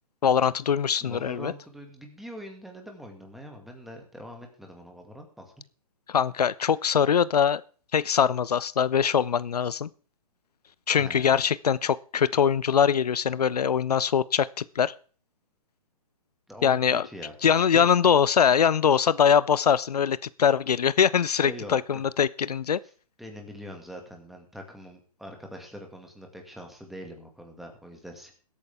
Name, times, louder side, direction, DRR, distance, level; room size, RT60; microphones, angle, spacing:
voice 1, 0.2-1.5 6.1-7.6 7.9-9.9 10.9-14.9 16.6-17.1 17.4-22.8, left 7 dB, 85° left, 19 dB, 0.5 m, -22 dB
voice 2, 1.0-5.5 11.0-11.4 16.5-17.9 21.4-22.0 23.2-28.3, equal, ahead, 3 dB, 2.1 m, -43 dB
21.0 x 8.6 x 3.6 m, 0.40 s
hypercardioid pair, 135°, 20 cm